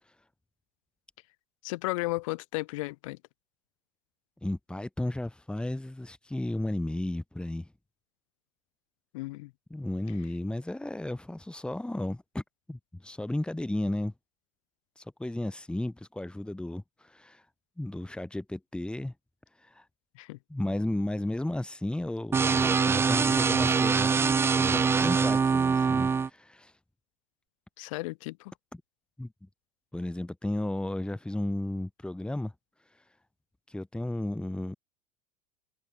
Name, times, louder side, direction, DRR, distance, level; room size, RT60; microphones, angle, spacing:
voice 1, 1.6-3.2 9.1-9.5 20.2-20.4 27.8-28.5, left 22 dB, 60° left, 7.7 m, -34 dB
voice 2, 4.4-7.7 9.7-12.4 12.7-14.1 15.0-17.4 17.8-19.1 19.6-19.8 20.5-26.7 28.7-28.8 29.2-29.5 29.9-32.5 33.7-34.7, left 1 dB, 5° left, 5.6 m, -34 dB
sound 1, 22.3-26.3, right 5 dB, 15° right, 0.5 m, -24 dB
figure-of-eight pair, 80°, 19 cm